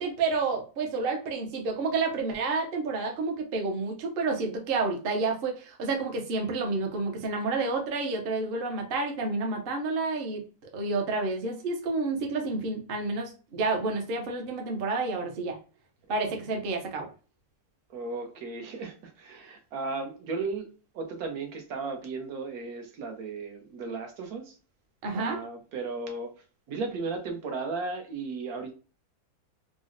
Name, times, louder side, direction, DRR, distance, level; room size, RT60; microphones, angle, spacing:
voice 1, 0.0-10.4 10.7-15.6 16.1-17.1 25.0-25.4, right 3 dB, 55° right, 0.7 m, -29 dB
voice 2, 17.9-20.7 20.9-24.6 25.1-28.7, right 4 dB, 75° right, 1.2 m, -35 dB
3.8 x 2.0 x 2.4 m
omnidirectional pair, 1.6 m